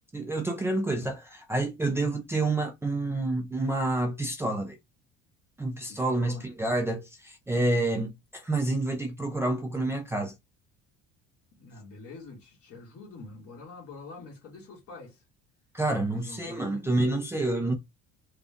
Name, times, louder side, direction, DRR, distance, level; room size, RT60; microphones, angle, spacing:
voice 1, 0.1-4.8 5.6-10.3 15.7-17.7, right 2 dB, 10° right, 0.5 m, -28 dB
voice 2, 5.9-6.5 11.6-15.2 16.1-16.9, left 3 dB, 45° left, 1.9 m, -45 dB
3.7 x 2.3 x 3.6 m
cardioid pair, 160°, 32 cm